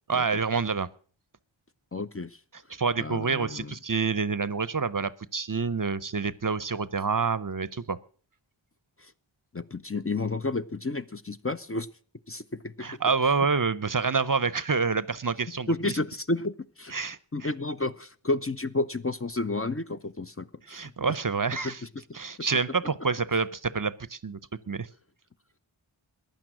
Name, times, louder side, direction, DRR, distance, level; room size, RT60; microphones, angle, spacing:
voice 1, 0.1-0.9 2.7-8.0 12.8-16.0 16.9-17.5 20.7-21.8 22.1-24.4 24.7-24.9, right 5 dB, 40° right, 18 dB, 0.6 m, -27 dB
voice 2, 1.9-2.4 3.0-3.7 9.0-9.1 9.5-11.9 12.3-13.0 15.7-16.9 17.3-20.9 21.6-21.7, left 2 dB, 30° left, 11 dB, 0.6 m, -31 dB
15.0 x 10.5 x 6.1 m, 0.44 s
wide cardioid pair, 50°, 49 cm